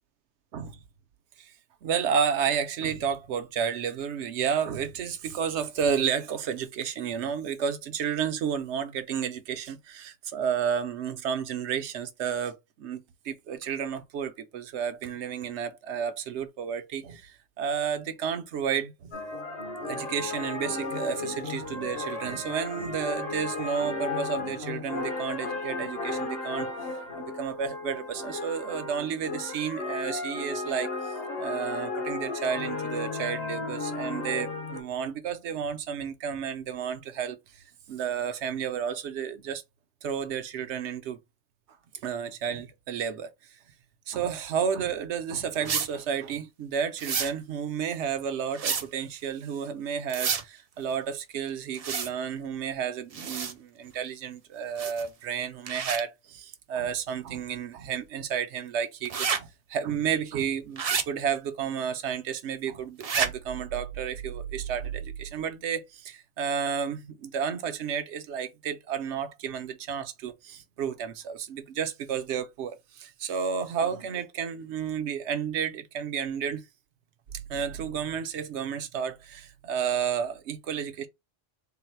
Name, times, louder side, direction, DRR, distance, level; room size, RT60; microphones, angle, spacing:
voice 1, 1.8-19.1 19.8-26.7 27.2-39.6 40.0-41.2 42.0-43.3 44.1-76.6 77.5-81.1, right 7 dB, 75° right, 0.9 m, -31 dB
sound 1, 19.1-34.8, left 3 dB, 55° left, 1.1 m, -34 dB
sound 2, 45.6-45.9 47.0-47.3 48.6-48.8 50.1-50.4 51.8-52.1 53.1-53.5 54.8-55.1 55.7-56.0 59.0-59.4 60.8-61.0 63.0-63.3, right 6 dB, 50° right, 0.4 m, -29 dB
3.9 x 2.1 x 4.3 m
omnidirectional pair, 1.2 m